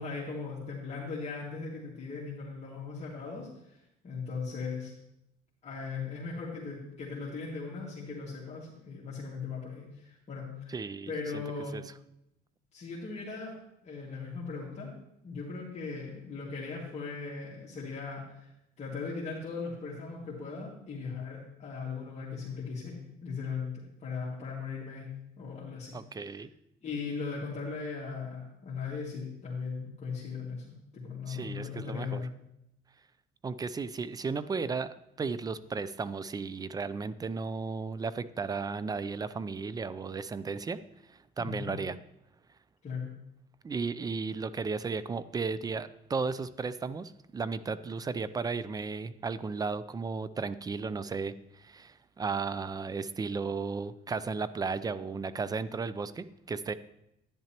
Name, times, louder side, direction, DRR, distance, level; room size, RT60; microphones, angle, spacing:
voice 1, 0.0-3.8 4.0-4.9 5.6-10.7 11.1-11.8 12.7-13.5 13.8-14.9 15.2-18.5 18.8-25.1 25.4-26.4 26.8-32.3 41.4-41.7 42.8-43.1, left 4 dB, 40° left, -6 dB, 2.0 m, -38 dB
voice 2, 10.7-11.4 11.7-11.8 25.9-26.5 31.3-32.2 33.4-40.8 41.4-42.0 43.6-56.7, right 4 dB, 20° right, 15 dB, 0.4 m, -34 dB
10.5 x 10.0 x 2.9 m, 0.82 s
cardioid pair, 110°, 17 cm